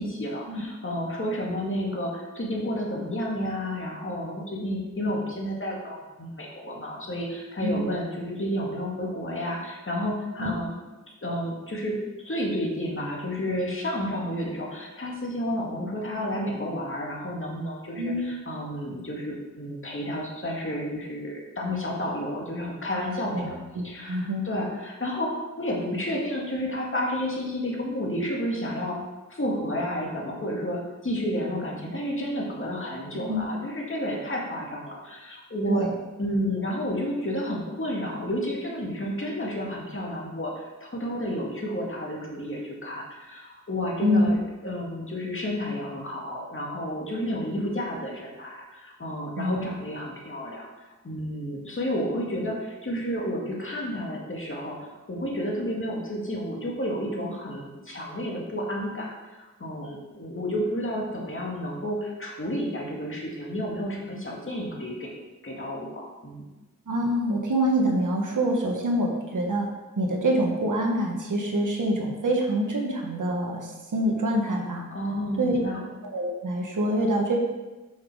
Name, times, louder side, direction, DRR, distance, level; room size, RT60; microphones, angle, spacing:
voice 1, 0.0-10.7 11.2-12.0 12.2-23.6 23.8-29.0 29.3-35.9 36.2-50.7 51.0-65.1 65.4-66.4 74.9-75.8, equal, 45° left, -2 dB, 2.0 m, -31 dB
voice 2, 18.0-18.4 23.3-24.5 33.3-33.4 35.7-35.9 44.0-44.3 49.4-49.8 66.9-69.7 70.0-74.9 75.4-75.6 76.0-77.4, right 1 dB, 85° right, 1 dB, 1.4 m, -26 dB
6.1 x 6.0 x 5.0 m, 1.1 s
wide cardioid pair, 75°, 30 cm